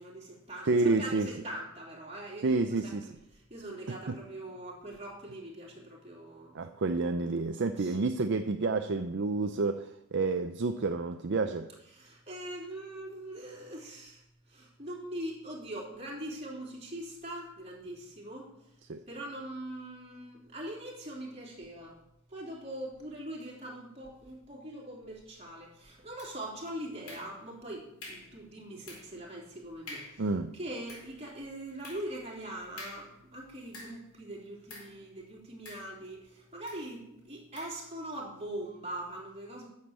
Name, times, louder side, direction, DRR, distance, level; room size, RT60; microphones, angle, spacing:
voice 1, 0.0-0.7 1.0-2.9 3.3-6.6 7.8-8.0 11.9-14.2 14.5-18.5 19.1-22.0 22.3-30.2 30.5-39.6, right 1 dB, 30° right, -3 dB, 3.4 m, -42 dB
voice 2, 0.7-1.3 2.4-3.1 3.9-4.2 6.5-11.7 18.9-19.0 30.2-30.5, right 3 dB, 55° right, 7 dB, 0.6 m, -29 dB
sound 1, 26.2-26.6 27.1-27.6 28.0-28.4 28.9-29.2 29.5-29.6 29.9-30.3 30.7-34.2 34.7-35.0 35.6-36.2 36.7-36.9 37.5-37.8, left 2 dB, 80° left, 4.3 m, -48 dB
10.5 x 7.4 x 7.6 m, 0.83 s
head